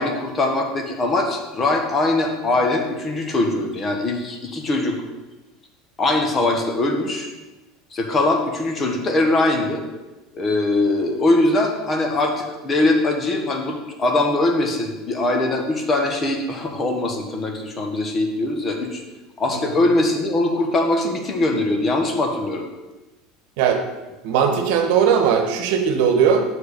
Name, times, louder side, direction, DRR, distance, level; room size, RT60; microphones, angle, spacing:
voice 1, 0.0-5.0 6.0-7.3 7.9-9.8 10.3-19.0 19.4-22.6, left 2 dB, 25° left, 3 dB, 1.3 m, -21 dB
voice 2, 24.2-26.4, right 7 dB, 70° right, 5 dB, 1.2 m, -18 dB
6.7 x 4.8 x 6.6 m, 1.1 s
supercardioid pair, 120°, 0 cm